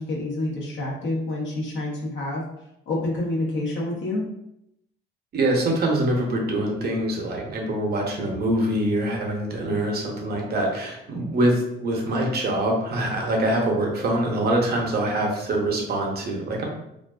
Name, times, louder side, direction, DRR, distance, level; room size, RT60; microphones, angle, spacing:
voice 1, 0.0-2.4 2.9-4.3, left 2 dB, 70° left, -3 dB, 0.8 m, -28 dB
voice 2, 5.3-16.7, right 1 dB, 55° right, 0 dB, 0.6 m, -24 dB
2.4 x 2.3 x 2.2 m, 0.81 s
cardioid pair, 90°, 20 cm